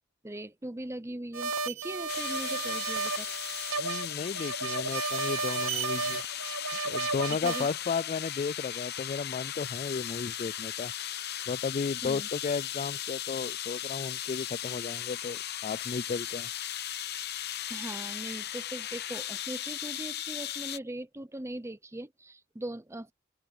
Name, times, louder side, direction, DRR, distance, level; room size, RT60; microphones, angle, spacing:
voice 1, 0.2-3.3 7.3-7.7 12.0-12.3 17.7-23.1, right 1 dB, 15° right, 0.7 m, -40 dB
sound 1, 1.3-7.7, right 5 dB, 80° right, 1.0 m, -33 dB
sound 2, 2.1-20.8, left 11 dB, 50° left, 0.9 m, -37 dB
voice 2, 3.8-6.2 6.9-10.9 11.5-16.5, left 5 dB, 35° left, 0.3 m, -34 dB
open air
head